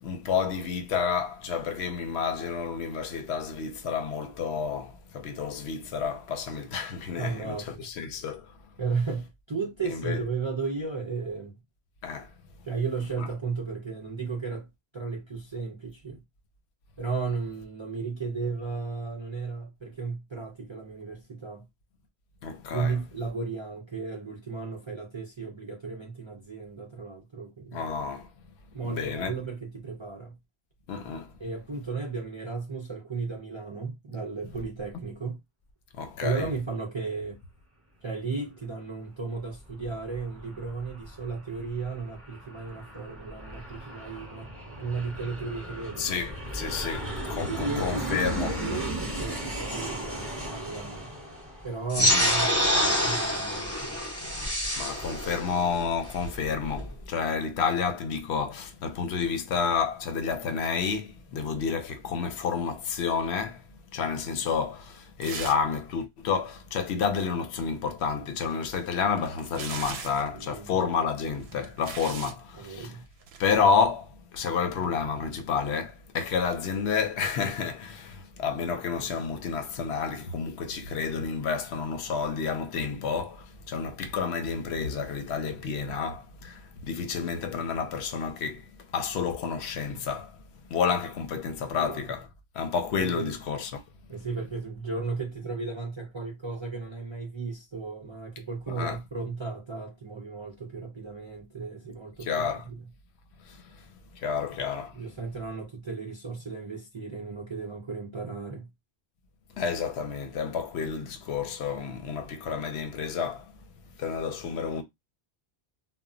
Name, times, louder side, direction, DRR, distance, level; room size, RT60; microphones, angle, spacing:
voice 1, 0.0-8.5 9.9-10.2 12.0-12.3 13.2-13.3 22.4-22.9 27.7-28.3 28.8-29.3 30.9-31.3 36.0-36.5 46.0-48.6 52.0-52.3 54.4-54.5 54.8-63.6 63.9-72.9 73.4-90.4 90.7-92.3 92.5-93.8 98.7-99.0 102.2-102.6 103.5-103.6 104.1-104.9 109.5-113.5 114.0-114.8, left 6 dB, 80° left, 0.8 m, -30 dB
voice 2, 7.2-7.9 8.8-11.6 12.6-14.7 14.9-16.2 17.0-21.6 22.7-27.8 28.7-30.3 31.4-35.4 36.2-37.4 38.0-46.2 47.5-51.1 51.6-54.0 70.3-70.7 72.6-73.0 91.7-92.0 93.0-93.3 94.1-102.7 104.4-104.5 104.9-108.7, right 4 dB, 45° right, 0.4 m, -34 dB
Aircraft, 39.3-52.5, right 1 dB, 15° right, 0.8 m, -37 dB
sound 1, 51.9-56.9, equal, 15° left, 0.6 m, -26 dB
sound 2, 65.2-65.8 66.0-66.1 68.5-70.3 71.2-72.4 73.2-73.5, right 6 dB, 75° right, 0.8 m, -39 dB
2.1 x 2.0 x 3.6 m
omnidirectional pair, 1.1 m